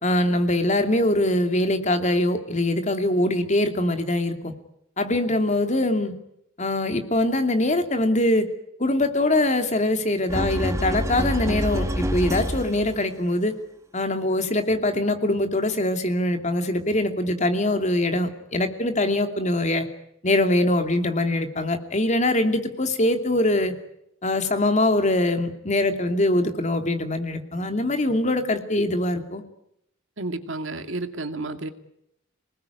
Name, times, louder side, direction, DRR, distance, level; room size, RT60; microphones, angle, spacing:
voice 1, 0.0-4.5 5.0-6.1 6.6-8.5 8.8-13.5 13.9-19.9 20.2-23.7 24.2-29.4, left 1 dB, 35° left, 7 dB, 2.8 m, -23 dB
sound 1, 10.3-13.0, equal, 15° right, 2.2 m, -26 dB
voice 2, 30.2-31.7, right 2 dB, 75° right, 8 dB, 2.3 m, -31 dB
27.5 x 19.5 x 9.5 m, 0.78 s
head